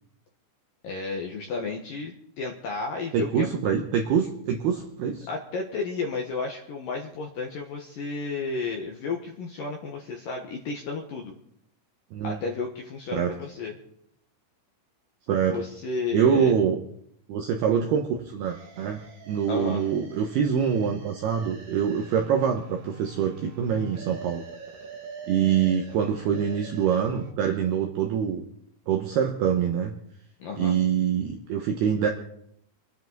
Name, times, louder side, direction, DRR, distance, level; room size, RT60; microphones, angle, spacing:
voice 1, 0.8-3.7 5.3-11.3 12.2-13.8 15.5-16.6 19.5-19.8 30.4-30.7, left 4 dB, 75° left, 1 dB, 2.0 m, -32 dB
voice 2, 3.1-5.3 12.1-12.4 13.1-13.4 15.3-15.6 16.1-16.8 17.3-24.4 25.3-28.4 28.9-29.9 30.5-32.1, right 7 dB, 80° right, 3 dB, 2.3 m, -25 dB
sound 1, 18.4-27.3, right 4 dB, 50° right, 2.1 m, -44 dB
25.5 x 10.5 x 3.9 m, 0.71 s
omnidirectional pair, 5.9 m